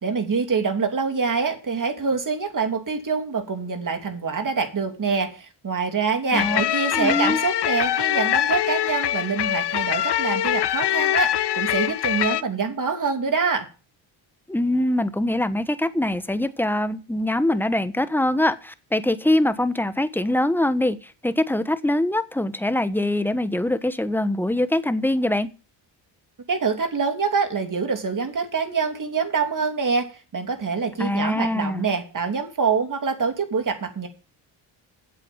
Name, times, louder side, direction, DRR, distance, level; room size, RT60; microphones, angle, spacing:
voice 1, 0.0-13.7 26.5-30.1 30.3-34.1, right 5 dB, 40° right, 5 dB, 3.0 m, -25 dB
sound 1, 6.3-12.4, left 12 dB, 55° left, 0.8 m, -23 dB
voice 2, 6.9-7.4 14.5-25.5 31.0-31.9, left 1 dB, 5° left, 12 dB, 1.1 m, -23 dB
8.5 x 7.7 x 7.2 m, 0.35 s
supercardioid pair, 70°, 48 cm